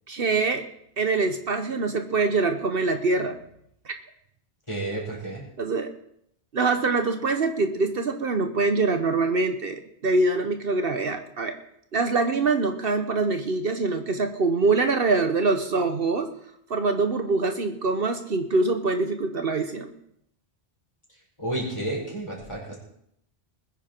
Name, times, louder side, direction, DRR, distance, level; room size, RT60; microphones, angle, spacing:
voice 1, 0.1-0.6 1.0-3.4 3.8-3.9 5.6-5.9 6.5-11.6 11.9-16.3 16.7-19.9, right 3 dB, 60° right, 7 dB, 1.2 m, -24 dB
voice 2, 4.7-5.5 21.4-22.8, right 1 dB, 25° left, -2 dB, 4.8 m, -31 dB
20.5 x 10.0 x 4.4 m, 0.73 s
omnidirectional pair, 1.1 m